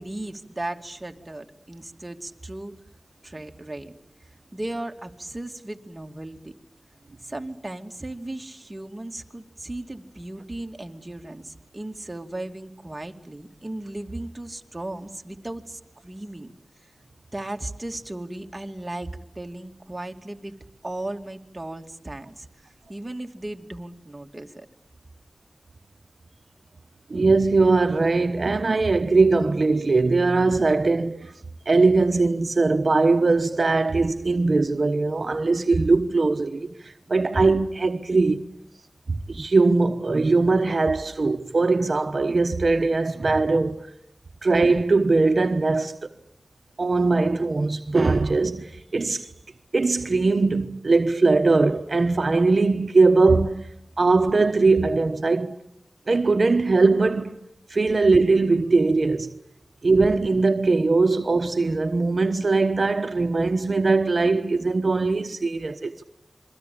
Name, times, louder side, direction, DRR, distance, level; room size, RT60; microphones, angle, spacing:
voice 1, 0.0-2.7 3.2-3.9 4.5-6.5 7.2-16.5 17.3-20.5 20.8-24.7, right 1 dB, 25° right, 2.6 m, -36 dB
voice 2, 27.1-31.3 31.7-38.4 39.3-43.9 44.4-46.1 46.8-49.3 49.7-53.7 54.0-55.6 56.1-57.3 57.7-59.3 59.8-66.0, right 3 dB, 65° right, 1.1 m, -20 dB
27.5 x 23.5 x 8.6 m
wide cardioid pair, 55°, 0 cm